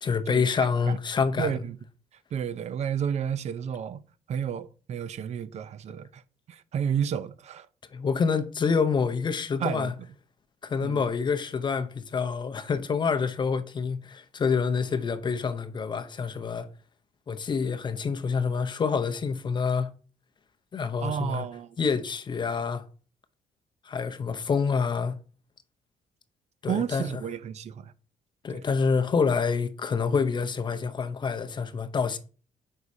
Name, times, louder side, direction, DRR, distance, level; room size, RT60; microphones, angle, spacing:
voice 1, 0.0-1.5 7.9-9.9 10.6-16.7 17.3-19.9 20.7-21.5 21.8-22.9 23.8-25.2 26.6-27.2 28.4-32.2, left 5 dB, 30° left, 0.7 m, -27 dB
voice 2, 1.4-1.8 2.3-4.0 4.3-6.2 6.5-7.7 9.6-9.9 10.8-11.0 21.0-21.8 26.7-27.9 28.5-28.6, right 8 dB, 50° right, 0.6 m, -31 dB
7.8 x 5.5 x 2.7 m
cardioid pair, 140°, 15 cm